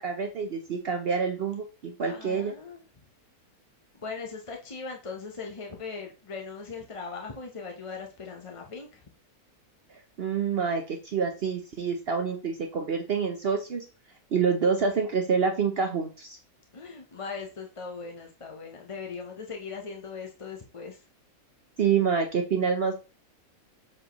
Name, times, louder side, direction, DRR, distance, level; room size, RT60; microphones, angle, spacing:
voice 1, 0.0-2.5 10.2-13.9 14.3-16.4 21.8-23.0, right 6 dB, 55° right, 4 dB, 0.8 m, -27 dB
voice 2, 2.0-2.8 3.9-9.0 16.7-21.0, left 5 dB, 30° left, 1 dB, 0.6 m, -39 dB
7.6 x 4.5 x 3.0 m, 0.33 s
omnidirectional pair, 1.6 m